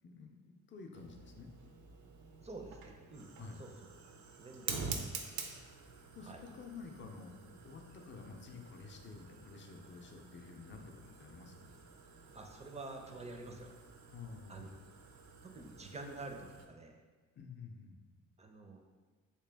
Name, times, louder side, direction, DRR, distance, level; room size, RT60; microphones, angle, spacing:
voice 1, 0.0-1.5 3.4-3.6 6.0-7.3 7.6-10.9 11.2-11.6 14.1-14.7 17.4-18.0, left 4 dB, 40° left, 3 dB, 0.5 m, -50 dB
Fire, 0.9-16.6, right 5 dB, 70° right, 0.5 m, -48 dB
voice 2, 2.4-3.3 3.6-3.9 4.4-5.1 6.2-6.4 12.3-13.7 14.5-14.7 15.4-16.9 18.4-18.9, right 2 dB, 20° right, 3 dB, 0.4 m, -48 dB
3.1 x 2.9 x 3.4 m, 1.4 s
cardioid pair, 90°, 30 cm